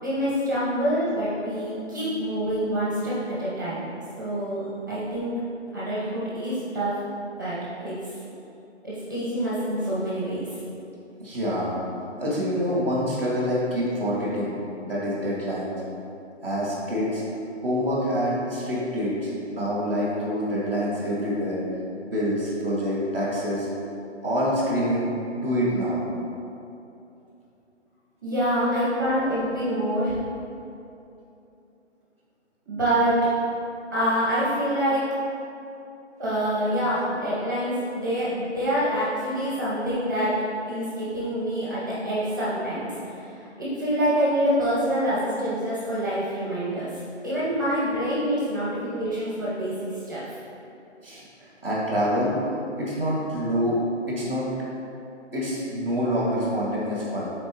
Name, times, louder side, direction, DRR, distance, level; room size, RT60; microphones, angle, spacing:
voice 1, 0.0-3.8 4.2-5.4 5.7-7.0 7.4-8.1 8.8-10.5 28.2-30.2 32.7-33.3 33.9-35.1 36.2-50.4, equal, 15° right, -9 dB, 1.1 m, -26 dB
voice 2, 11.2-11.7 12.2-14.5 14.8-15.7 16.4-17.2 17.6-21.6 22.0-23.7 24.2-26.0 51.0-52.3 52.8-53.8 54.1-54.5 55.3-57.3, equal, 10° left, -14 dB, 0.9 m, -26 dB
9.8 x 4.3 x 3.0 m, 2.8 s
hypercardioid pair, 180°, 36 cm